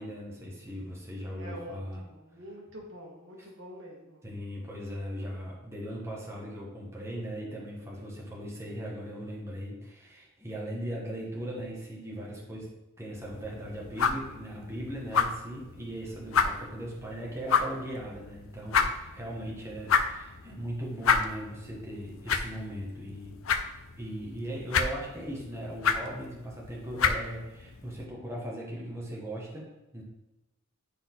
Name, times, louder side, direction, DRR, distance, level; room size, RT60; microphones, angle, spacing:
voice 1, 0.0-2.0 4.2-12.7 13.0-23.4 24.0-30.0, right 1 dB, 15° right, -4 dB, 1.6 m, -38 dB
voice 2, 1.4-4.2, equal, 65° right, -1 dB, 1.7 m, -45 dB
sound 1, 13.2-28.0, left 6 dB, 75° left, 0.6 m, -31 dB
10.0 x 4.1 x 3.8 m, 1.0 s
head